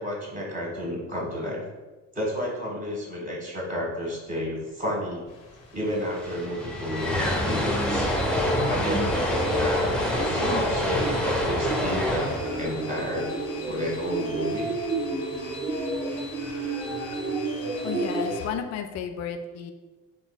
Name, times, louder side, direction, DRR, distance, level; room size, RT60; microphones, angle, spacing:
voice 1, 0.0-1.6 2.1-5.2 5.7-8.1 8.7-13.3 13.7-14.7, equal, 20° right, -3 dB, 1.4 m, -31 dB
sound 1, 5.3-18.5, left 3 dB, 60° left, 1.0 m, -43 dB
sound 2, 5.6-5.7 5.9-14.1, left 1 dB, ahead, 0.6 m, -27 dB
sound 3, 7.3-18.4, right 2 dB, 60° right, 1.1 m, -31 dB
voice 2, 17.8-19.7, left 7 dB, 40° left, 7 dB, 0.4 m, -33 dB
4.2 x 3.1 x 2.2 m, 1.2 s
hypercardioid pair, 45°, 42 cm